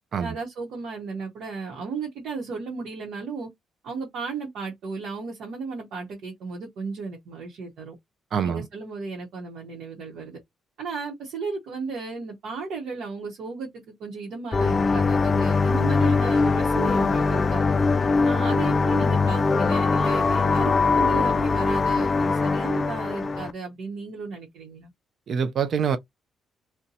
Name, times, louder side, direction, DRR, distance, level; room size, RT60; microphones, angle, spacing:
voice 1, 0.2-3.5 3.8-7.9 8.4-10.4 10.8-17.7 18.2-24.9, right 4 dB, 75° right, 0.9 m, -35 dB
voice 2, 8.3-8.7 25.3-26.0, right 7 dB, 60° right, 0.4 m, -25 dB
sound 1, 14.5-23.5, left 4 dB, 35° left, 0.3 m, -22 dB
2.7 x 2.1 x 3.9 m
cardioid pair, 90°, 0 cm